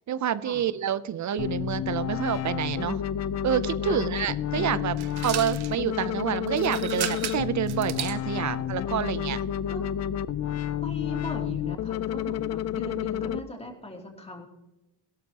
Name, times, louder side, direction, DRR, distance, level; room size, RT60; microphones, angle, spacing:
voice 1, 0.1-3.0 3.4-4.9 5.2-9.4, right 9 dB, 45° right, 16 dB, 0.6 m, -28 dB
sound 1, 1.4-13.4, left 10 dB, 40° left, 0.5 m, -30 dB
voice 2, 4.5-5.0 8.3-8.5 9.7-9.8 10.8-14.5, left 1 dB, 15° left, 1 dB, 2.9 m, -39 dB
sound 2, 5.0-5.8 6.5-8.2, right 11 dB, 70° right, 1.1 m, -34 dB
16.5 x 13.0 x 2.9 m, 0.97 s
cardioid pair, 110°, 40 cm